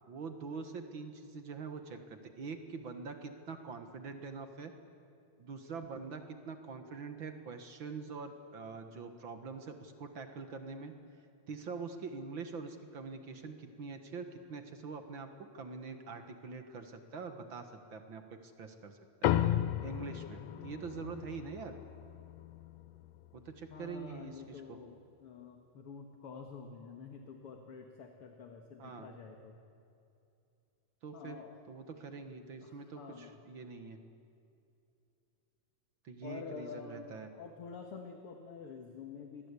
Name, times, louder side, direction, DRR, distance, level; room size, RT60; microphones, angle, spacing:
voice 1, 0.1-4.7 5.4-10.9 11.5-15.3 15.5-19.4 19.8-21.7 23.3-24.8 28.8-29.1 31.0-31.4 31.7-34.0 36.0-37.3, right 4 dB, 50° right, 7 dB, 1.9 m, -44 dB
sound 1, 19.2-24.0, left 12 dB, 70° left, 1.9 m, -35 dB
voice 2, 23.7-29.5 31.1-31.6 32.6-33.4 36.2-39.5, left 5 dB, 55° left, 4 dB, 2.5 m, -48 dB
28.0 x 22.5 x 8.4 m, 2.7 s
omnidirectional pair, 3.3 m